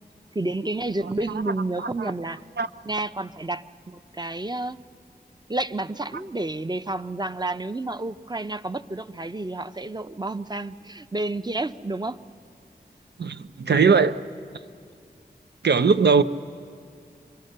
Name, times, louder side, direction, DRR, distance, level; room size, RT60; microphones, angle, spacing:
voice 1, 0.3-2.4 2.8-4.8 5.5-12.2, right 2 dB, 25° right, 0.6 m, -30 dB
voice 2, 1.8-2.1 2.6-2.7 13.2-14.2 15.6-16.2, right 5 dB, 90° right, 0.7 m, -20 dB
26.0 x 24.0 x 6.6 m
wide cardioid pair, 65°, 17 cm